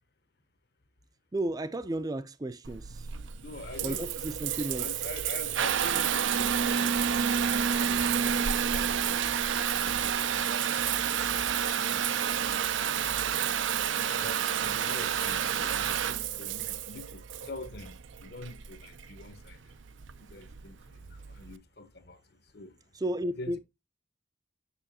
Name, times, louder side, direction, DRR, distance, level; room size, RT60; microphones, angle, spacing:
voice 1, 1.3-3.1 3.8-4.9 22.9-23.6, right 1 dB, 20° right, 0.4 m, -33 dB
Water tap faucet / Bathtub (filling or washing) / Trickle dribble, 2.6-21.5, right 8 dB, 85° right, 0.5 m, -30 dB
voice 2, 3.4-4.0 4.4-9.0 9.5-10.7 11.1-12.9 14.1-19.7 20.2-22.7 23.3-23.6, left 2 dB, 60° left, 1.1 m, -46 dB
6.9 x 6.9 x 2.7 m
head